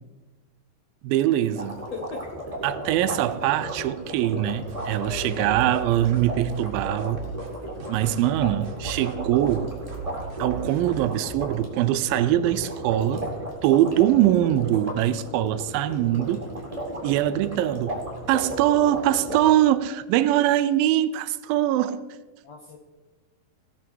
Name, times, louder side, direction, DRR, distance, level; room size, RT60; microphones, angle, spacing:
voice 1, 1.0-1.8 2.6-7.2 7.9-9.7 10.4-13.3 13.6-16.4 17.0-18.0 18.3-22.1, right 12 dB, 85° right, 2.3 m, -22 dB
sound 1, 1.5-19.4, right 1 dB, 15° right, 1.5 m, -35 dB
voice 2, 1.9-2.2 5.0-5.7 22.4-22.8, left 5 dB, 75° left, 1.5 m, -39 dB
sound 2, 4.7-11.3, right 6 dB, 50° right, 1.5 m, -38 dB
18.0 x 6.6 x 4.5 m
omnidirectional pair, 4.2 m